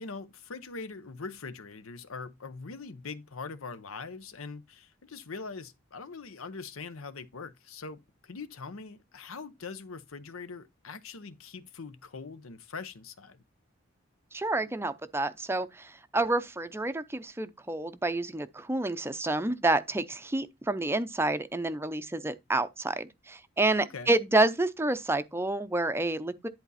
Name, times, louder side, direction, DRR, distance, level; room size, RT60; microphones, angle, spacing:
voice 1, 0.0-13.4 23.9-24.1, left 4 dB, 80° left, 0.9 m, -42 dB
voice 2, 14.3-26.5, right 2 dB, 10° right, 0.5 m, -29 dB
11.0 x 4.0 x 4.1 m
head